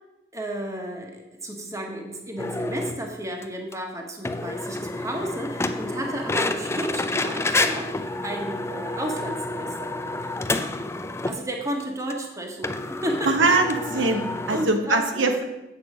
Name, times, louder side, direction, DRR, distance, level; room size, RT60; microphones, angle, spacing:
voice 1, 0.3-7.9 8.2-10.2 11.3-12.8 13.0-13.3 14.0-14.1 14.5-15.3, right 1 dB, 15° right, 2 dB, 1.3 m, -32 dB
sound 1, 2.4-3.0 3.4-3.5 3.7-3.8 4.2-11.4 11.8-11.9 12.1-12.2 12.6-14.7, left 2 dB, 15° left, 0.4 m, -29 dB
voice 2, 13.3-15.4, right 3 dB, 75° right, 4 dB, 1.0 m, -22 dB
8.4 x 6.6 x 5.1 m, 0.95 s
head